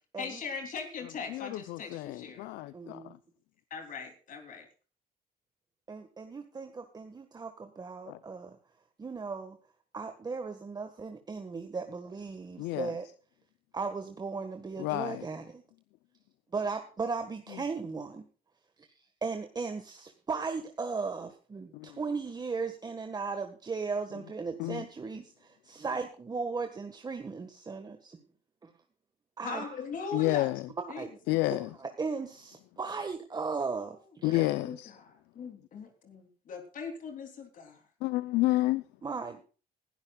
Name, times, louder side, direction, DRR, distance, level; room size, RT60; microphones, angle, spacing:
voice 1, 0.2-2.5 3.7-4.6 29.4-30.5 30.9-31.0 34.4-37.8, left 5 dB, 50° left, 3.3 m, -40 dB
voice 2, 1.3-3.0 8.1-8.2 12.6-12.9 14.8-15.3 21.7-22.0 24.6-24.8 30.1-30.6 31.3-31.7 34.2-34.9 38.0-38.8, left 18 dB, 90° left, 0.7 m, -30 dB
voice 3, 2.7-3.1 5.9-8.6 9.0-9.6 9.9-13.1 13.7-15.6 16.5-18.2 19.2-28.2 28.6-28.7 29.4-29.8 30.8-31.1 31.8-34.5 39.0-39.4, right 4 dB, 25° right, 1.6 m, -37 dB
20.0 x 12.0 x 2.4 m
cardioid pair, 110°, 17 cm